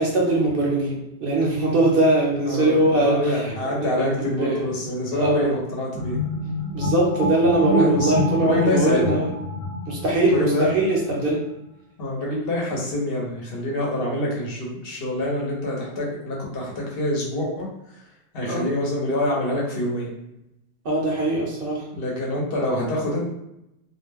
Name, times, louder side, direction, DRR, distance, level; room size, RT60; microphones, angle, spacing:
voice 1, 0.0-3.2 3.4-3.5 3.8-4.7 5.1-5.6 6.7-9.3 9.9-11.5 18.4-18.6 20.8-21.9, right 2 dB, 60° right, -3 dB, 0.8 m, -21 dB
voice 2, 2.4-6.2 7.5-9.2 10.2-10.7 11.2-11.3 12.0-18.1 18.3-20.1 21.9-23.3, left 1 dB, 65° left, -3 dB, 1.0 m, -26 dB
sound 1, 5.9-11.2, left 2 dB, 85° left, 1.0 m, -27 dB
2.4 x 2.1 x 3.3 m, 0.84 s
omnidirectional pair, 1.1 m